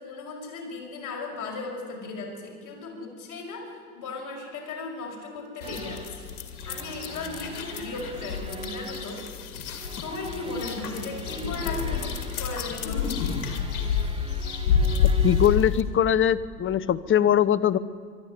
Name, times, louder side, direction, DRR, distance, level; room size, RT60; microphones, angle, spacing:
voice 1, 0.0-6.3 6.7-9.2 10.0-13.1, left 3 dB, 45° left, -1 dB, 6.0 m, -36 dB
sound 1, 5.6-15.8, left 6 dB, 75° left, 2.5 m, -29 dB
sound 2, 5.6-15.6, right 3 dB, 15° right, 1.4 m, -43 dB
voice 2, 15.2-17.8, left 9 dB, 30° left, 18 dB, 0.9 m, -21 dB
23.5 x 12.0 x 9.9 m, 2.2 s
hypercardioid pair, 85°, 43 cm